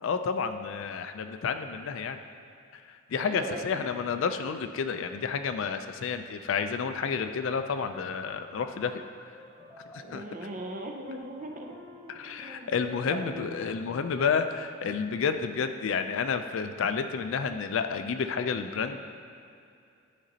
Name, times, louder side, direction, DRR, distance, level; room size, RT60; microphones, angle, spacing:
voice 1, 0.0-2.2 2.7-9.3 9.9-10.2 12.1-19.0, left 6 dB, 65° left, 8 dB, 0.3 m, -30 dB
voice 2, 3.2-3.9 10.0-11.7 12.0-12.7 13.1-13.5, right 1 dB, 40° right, 2 dB, 0.5 m, -39 dB
sound 1, 7.5-14.5, left 1 dB, 15° left, 0.6 m, -50 dB
10.0 x 5.0 x 2.7 m, 2.5 s
head